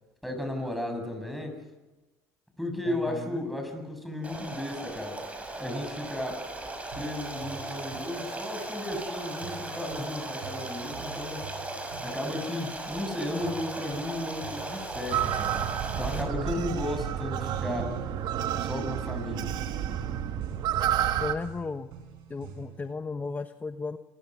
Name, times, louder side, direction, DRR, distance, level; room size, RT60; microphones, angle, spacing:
voice 1, 0.2-1.6 2.6-5.2 5.6-6.4 6.9-11.5 12.0-15.6 16.0-18.0 18.6-19.5, left 1 dB, ahead, 5 dB, 7.3 m, -34 dB
voice 2, 2.9-3.5 16.1-16.5 21.2-21.9 22.3-24.0, left 4 dB, 20° left, 9 dB, 1.2 m, -35 dB
Stream, 4.2-16.2, right 2 dB, 15° right, 6.9 m, -37 dB
sound 1, 6.9-22.9, right 6 dB, 75° right, 6.2 m, -48 dB
sound 2, 15.1-21.4, right 10 dB, 60° right, 2.0 m, -30 dB
27.0 x 21.5 x 6.3 m, 1.1 s
supercardioid pair, 90°, 8 cm